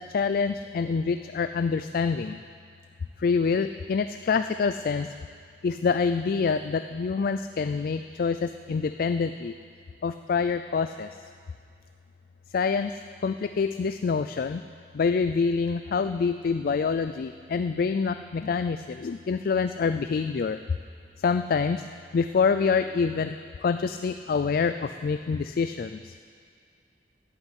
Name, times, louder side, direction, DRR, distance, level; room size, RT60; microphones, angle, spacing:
voice 1, 0.0-2.4 3.2-5.1 5.6-9.5 10.0-11.1 12.5-12.9 13.2-14.6 14.9-20.6 21.2-21.8 22.1-23.4 23.6-26.0, left 5 dB, 55° left, 9 dB, 0.4 m, -26 dB
11.5 x 8.5 x 9.9 m, 2.3 s
head